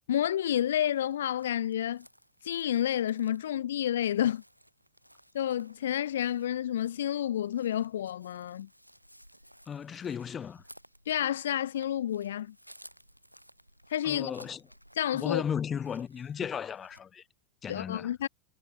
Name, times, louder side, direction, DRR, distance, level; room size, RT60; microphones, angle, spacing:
voice 1, 0.1-2.1 2.4-4.4 5.3-8.7 11.1-12.5 13.9-14.3 15.0-15.4 17.7-18.3, left 11 dB, 60° left, 0.3 m, -30 dB
Chirp tweet, 0.9-17.0, equal, 90° right, 5.2 m, -58 dB
voice 2, 9.7-10.6 14.0-14.6 15.1-17.2 17.6-18.1, left 7 dB, 20° left, 0.6 m, -35 dB
figure-of-eight pair, 90°, 0 cm